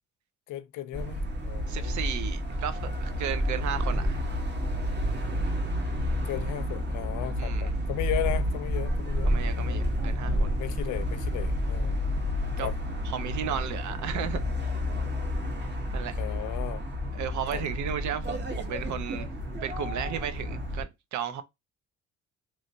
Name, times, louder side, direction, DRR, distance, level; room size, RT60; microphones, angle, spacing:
voice 1, 0.5-2.0 6.2-9.4 10.3-11.9 12.6-12.7 16.2-16.8 17.5-17.6, left 13 dB, 80° left, 0.6 m, -35 dB
sound 1, 0.9-20.8, equal, 35° right, 1.2 m, -30 dB
voice 2, 1.7-4.2 7.4-7.7 9.2-10.6 12.6-12.7 13.1-14.7 15.9-16.1 17.1-19.3 19.6-21.4, right 9 dB, 70° right, 0.7 m, -34 dB
3.2 x 3.1 x 2.6 m
cardioid pair, 90°, 30 cm